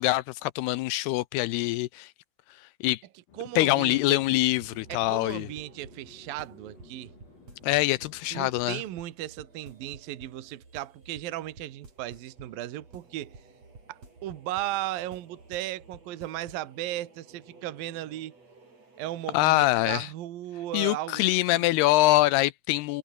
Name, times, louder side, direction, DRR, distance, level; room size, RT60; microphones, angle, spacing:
voice 1, 0.0-2.1 2.8-3.0 3.6-5.5 7.6-8.8 19.3-20.1 20.7-23.0, left 18 dB, 80° left, 2.5 m, -24 dB
sound 1, 3.3-8.8, left 7 dB, 60° left, 5.4 m, -57 dB
voice 2, 3.3-4.2 4.9-7.1 8.3-13.3 13.9-18.3 19.0-21.2 21.5-21.6, right 14 dB, 65° right, 2.9 m, -36 dB
sound 2, 4.2-19.5, right 3 dB, 35° right, 8.2 m, -52 dB
omnidirectional pair, 4.9 m